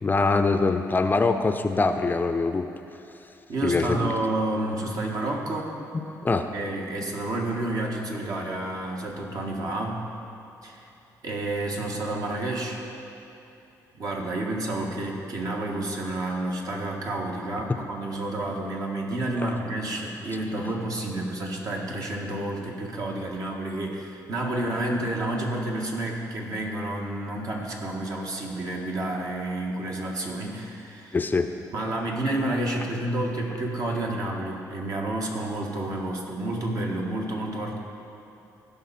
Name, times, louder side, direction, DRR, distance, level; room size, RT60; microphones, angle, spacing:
voice 1, 0.0-2.7 3.6-4.1 6.1-6.5 31.1-31.5, left 3 dB, 25° left, 7 dB, 0.5 m, -23 dB
voice 2, 3.5-5.7 6.5-10.0 10.6-10.8 11.2-12.8 14.0-31.2 31.7-37.8, right 1 dB, 55° right, -1 dB, 1.6 m, -30 dB
16.0 x 5.6 x 4.2 m, 2.9 s
cardioid pair, 85°, 7 cm